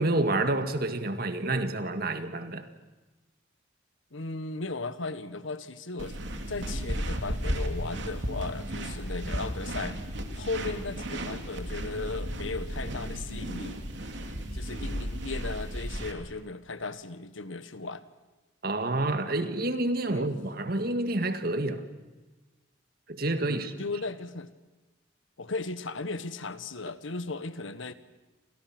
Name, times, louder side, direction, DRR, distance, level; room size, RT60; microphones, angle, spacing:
voice 1, 0.0-2.7 18.6-21.8 23.1-23.7, right 2 dB, 50° right, 1.9 m, -28 dB
voice 2, 4.1-6.2 6.5-10.0 10.3-13.8 14.5-18.0 20.1-20.3 23.4-24.5 25.4-27.9, left 3 dB, 85° left, 1.5 m, -36 dB
sound 1, 6.0-16.1, equal, 70° right, 3.0 m, -34 dB
29.5 x 27.0 x 6.1 m
head